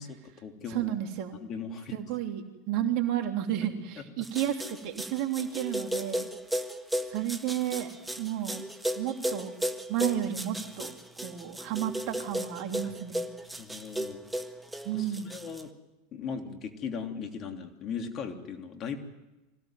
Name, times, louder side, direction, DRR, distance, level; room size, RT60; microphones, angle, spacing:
voice 1, 0.0-0.9 1.4-2.0 4.0-4.1 12.8-12.9 13.6-14.2 14.9-15.7 16.1-19.0, left 6 dB, 40° left, 5 dB, 3.1 m, -38 dB
voice 2, 0.7-1.4 1.9-6.3 7.1-7.9 8.2-8.6 9.0-9.5 9.9-10.9 11.2-13.2 14.8-15.3, right 11 dB, 55° right, 4 dB, 3.2 m, -32 dB
sound 1, 4.2-15.6, equal, 5° right, 1.8 m, -34 dB
25.0 x 17.0 x 9.3 m, 1.1 s
hypercardioid pair, 90°, 0 cm